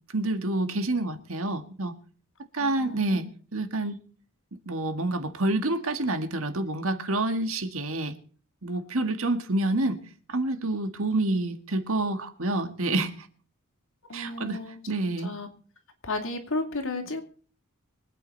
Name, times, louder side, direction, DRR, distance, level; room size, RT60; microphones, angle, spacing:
voice 1, 0.1-1.9 2.5-3.3 3.5-4.0 4.7-8.1 8.6-10.0 10.3-13.1 14.1-14.6 14.9-15.3, right 2 dB, 65° right, 1.9 m, -28 dB
voice 2, 2.6-3.2 14.1-14.8 15.2-15.5 16.0-17.2, left 2 dB, 65° left, 2.8 m, -33 dB
24.0 x 9.0 x 4.1 m
head